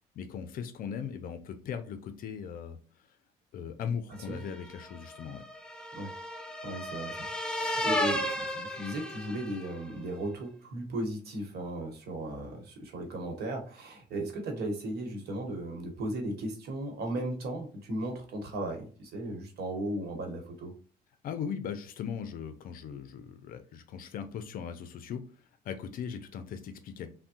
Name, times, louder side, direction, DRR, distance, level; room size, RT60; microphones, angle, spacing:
voice 1, 0.1-2.8 3.5-5.4 21.2-25.2 25.6-27.1, left 7 dB, 60° left, 9 dB, 0.5 m, -38 dB
sound 1, 4.4-9.8, left 1 dB, 5° left, 0.4 m, -34 dB
voice 2, 6.6-20.7, right 1 dB, 70° right, 3 dB, 1.0 m, -36 dB
3.4 x 2.1 x 2.7 m, 0.39 s
cardioid pair, 110°, 17 cm